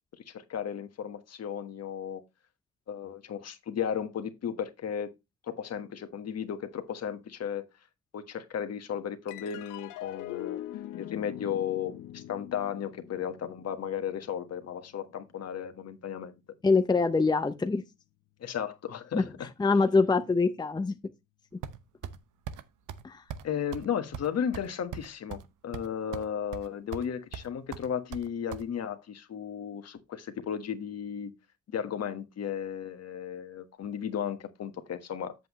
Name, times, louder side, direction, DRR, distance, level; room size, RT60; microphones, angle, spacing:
voice 1, 0.3-2.2 2.9-5.1 5.5-7.7 8.1-10.6 11.0-16.3 18.4-19.5 23.4-31.3 31.7-35.3, left 8 dB, 55° left, 1.4 m, -35 dB
sound 1, 9.3-16.0, left 13 dB, 90° left, 0.8 m, -43 dB
voice 2, 16.6-17.8 19.1-19.3 19.6-21.0 23.0-23.2, left 4 dB, 15° left, 0.7 m, -24 dB
sound 2, 21.6-22.2 22.5-22.6 22.9-23.0 23.3-23.5 23.7-23.9 24.1-25.5 25.7-26.3 26.5-27.1 27.3-28.6, right 8 dB, 80° right, 0.9 m, -40 dB
8.0 x 7.7 x 3.0 m
cardioid pair, 90°, 30 cm